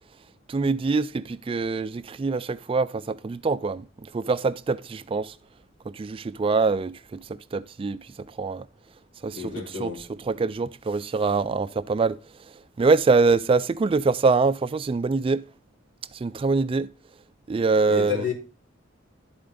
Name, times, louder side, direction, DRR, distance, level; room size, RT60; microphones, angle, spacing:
voice 1, 0.5-3.9 4.1-5.3 5.9-7.2 7.5-8.0 8.4-8.6 9.2-9.5 9.8-9.9 10.3-12.2 12.8-15.4 16.1-16.9 17.5-18.2, right 4 dB, 30° right, 0.3 m, -24 dB
voice 2, 9.3-10.0 17.9-18.3, left 6 dB, 75° left, 3.2 m, -30 dB
11.5 x 4.3 x 3.7 m
head